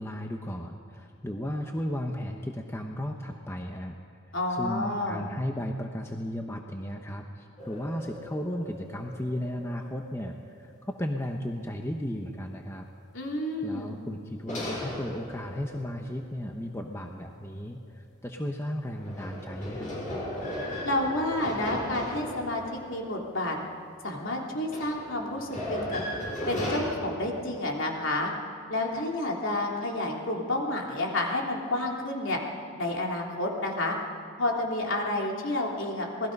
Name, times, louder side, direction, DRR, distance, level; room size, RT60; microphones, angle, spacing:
voice 1, 0.0-4.0 4.5-10.7 11.0-12.9 13.6-19.9, equal, 10° left, 2 dB, 1.0 m, -35 dB
voice 2, 4.3-5.2 13.1-13.9 20.8-22.6 22.9-23.6 24.0-26.0 26.5-28.3 28.7-32.4 32.8-34.0 34.4-36.3, left 1 dB, 60° left, -1 dB, 3.3 m, -30 dB
sound 1, 7.6-11.1 11.6-11.7 14.5-16.8 19.0-23.8 24.6-26.8, left 1 dB, 35° left, 6.6 m, -37 dB
27.5 x 20.0 x 5.4 m, 2.4 s
head